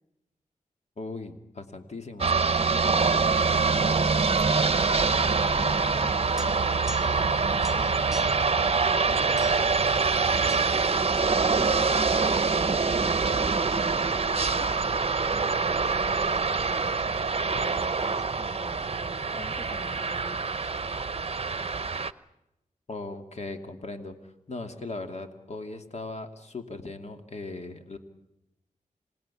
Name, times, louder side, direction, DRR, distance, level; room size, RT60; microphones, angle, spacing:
voice 1, 1.0-2.3 22.9-28.0, left 3 dB, 55° left, 6 dB, 2.6 m, -38 dB
sound 1, 2.2-22.1, right 4 dB, 45° right, 0.9 m, -25 dB
voice 2, 3.1-11.9 12.3-14.7 15.3-20.7, equal, 25° left, 7 dB, 2.1 m, -45 dB
sound 2, 6.4-7.3 7.6-8.5 9.4-9.8 10.5-10.7, equal, 5° right, 2.0 m, -43 dB
27.0 x 19.0 x 8.5 m, 0.89 s
wide cardioid pair, 65°, 14 cm